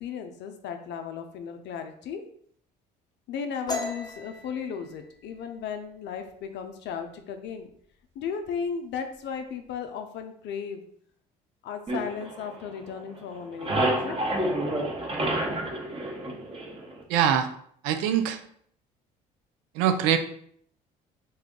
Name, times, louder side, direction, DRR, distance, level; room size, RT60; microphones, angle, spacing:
voice 1, 0.0-2.2 3.3-7.7 8.2-10.8 11.6-14.2, left 6 dB, 60° left, 6 dB, 0.6 m, -35 dB
sound 1, 3.7-7.1 7.4-7.8 8.1-8.7 8.9-9.7, left 2 dB, 20° left, 0.7 m, -38 dB
sound 2, 11.9-13.0 13.3-17.0, right 1 dB, 25° right, 0.9 m, -29 dB
voice 2, 17.1-17.5 17.8-18.4 19.8-20.2, right 9 dB, 75° right, 8 dB, 0.4 m, -23 dB
2.7 x 2.4 x 3.6 m, 0.64 s
hypercardioid pair, 60°, 20 cm